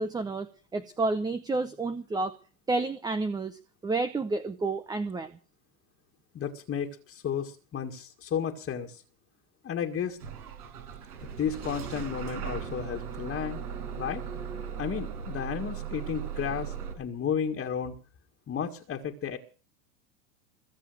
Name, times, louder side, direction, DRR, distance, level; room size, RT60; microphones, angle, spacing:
voice 1, 0.0-2.3 2.7-5.3, right 3 dB, 10° right, 13 dB, 0.7 m, -30 dB
voice 2, 6.3-9.0 9.6-10.2 11.2-13.6 14.0-14.2 14.8-18.0 18.5-19.4, left 8 dB, 25° left, 2 dB, 1.9 m, -33 dB
Bus / Engine starting, 10.2-16.9, right 8 dB, 70° right, 5.7 m, -37 dB
22.0 x 7.4 x 7.9 m, 0.38 s
hypercardioid pair, 110°, 47 cm